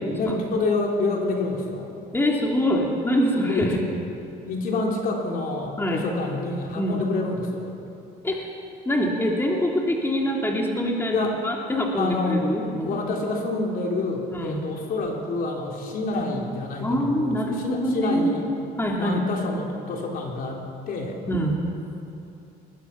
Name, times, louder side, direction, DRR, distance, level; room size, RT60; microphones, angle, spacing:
voice 1, 0.1-1.9 3.4-3.8 4.5-7.7 11.1-11.4 12.0-12.4 12.9-18.5 19.0-21.2, left 3 dB, 60° left, 0 dB, 3.7 m, -27 dB
voice 2, 2.1-3.8 5.8-6.0 6.8-7.0 8.2-8.5 8.8-13.0 14.3-14.6 16.8-18.3 18.8-19.2 21.3-21.6, equal, 15° left, -1 dB, 3.0 m, -24 dB
21.5 x 21.0 x 5.9 m, 2.7 s
cardioid pair, 110°, 17 cm